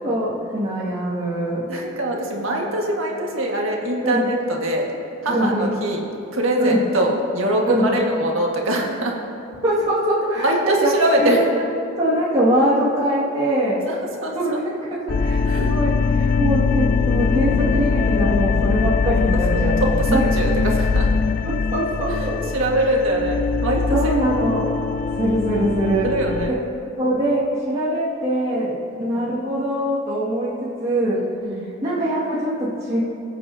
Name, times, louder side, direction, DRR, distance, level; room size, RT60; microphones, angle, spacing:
voice 1, 0.0-1.7 4.0-4.3 5.3-5.8 6.6-6.8 7.7-8.0 9.6-10.9 11.2-11.5 12.0-13.8 14.3-20.3 21.4-22.4 23.9-24.7 25.2-26.1 27.0-31.2 31.8-33.0, right 1 dB, 30° right, -9 dB, 2.1 m, -22 dB
voice 2, 1.7-4.9 5.2-9.2 10.4-11.5 13.9-14.6 15.5-15.7 19.3-21.1 22.2-24.2 26.0-26.6 29.0-29.3 31.4-31.7, right 1 dB, 85° right, -1 dB, 1.7 m, -23 dB
sound 1, 15.1-26.5, left 4 dB, 40° left, 0.3 m, -21 dB
20.5 x 8.4 x 2.8 m, 2.7 s
head